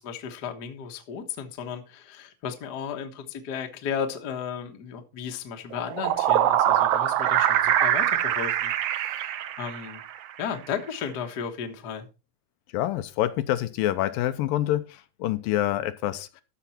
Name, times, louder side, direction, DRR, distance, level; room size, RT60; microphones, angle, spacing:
voice 1, 0.0-9.3 9.6-10.0 10.4-12.1, left 7 dB, 60° left, 1.0 m, -34 dB
sound 1, 5.7-10.2, right 11 dB, 70° right, 1.9 m, -23 dB
voice 2, 12.7-16.4, left 13 dB, 85° left, 2.5 m, -27 dB
13.5 x 6.0 x 4.3 m
omnidirectional pair, 4.0 m